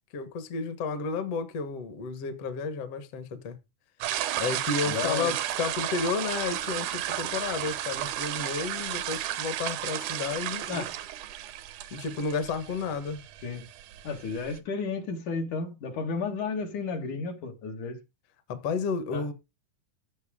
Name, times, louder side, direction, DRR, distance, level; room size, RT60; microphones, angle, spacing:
voice 1, 0.1-3.6 4.4-10.8 11.9-13.2 18.5-19.3, left 5 dB, 55° left, 2.3 m, -32 dB
sound 1, 4.0-14.6, right 12 dB, 80° right, 2.3 m, -33 dB
voice 2, 4.9-5.3 10.7-10.9 13.4-13.7 14.0-18.0 19.1-19.3, left 5 dB, 75° left, 3.6 m, -33 dB
15.0 x 7.9 x 3.7 m
omnidirectional pair, 3.5 m